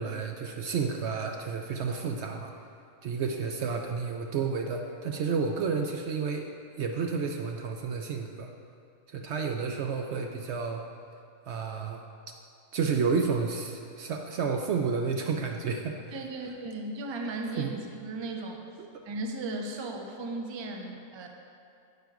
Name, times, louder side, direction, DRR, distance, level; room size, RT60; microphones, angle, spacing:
voice 1, 0.0-2.5 3.0-6.5 6.8-8.5 9.1-10.8 11.5-12.0 12.7-16.2 17.6-17.9 18.8-19.0, right 5 dB, 65° right, 3 dB, 0.7 m, -31 dB
voice 2, 16.1-18.6 19.0-21.3, right 2 dB, 35° right, 2 dB, 0.4 m, -36 dB
9.0 x 5.1 x 4.7 m, 2.4 s
omnidirectional pair, 1.4 m